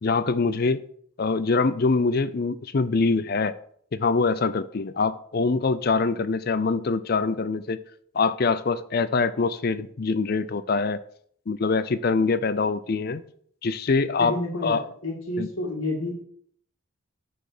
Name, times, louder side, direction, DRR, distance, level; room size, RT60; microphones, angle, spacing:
voice 1, 0.0-0.8 1.2-3.5 4.0-7.8 8.1-11.0 11.5-13.2 13.6-14.9 15.4-15.5, left 4 dB, 45° left, 14 dB, 0.5 m, -24 dB
voice 2, 14.2-16.2, left 1 dB, 75° left, 0 dB, 2.0 m, -30 dB
10.0 x 4.3 x 6.7 m, 0.62 s
head